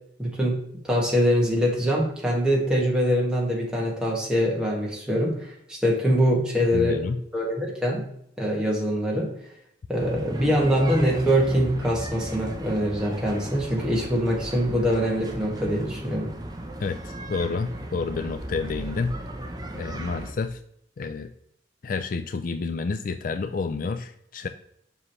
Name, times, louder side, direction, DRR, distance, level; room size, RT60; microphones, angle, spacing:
voice 1, 0.2-7.0 7.3-8.0 8.4-9.3 9.9-16.3, equal, 5° right, -4 dB, 1.9 m, -24 dB
voice 2, 6.7-7.2 16.8-19.1 19.7-20.6 21.0-21.3 21.8-24.5, left 4 dB, 45° left, 10 dB, 0.4 m, -29 dB
sound 1, 10.0-20.3, right 1 dB, 20° right, 0.8 m, -36 dB
7.4 x 5.5 x 3.2 m, 0.73 s
head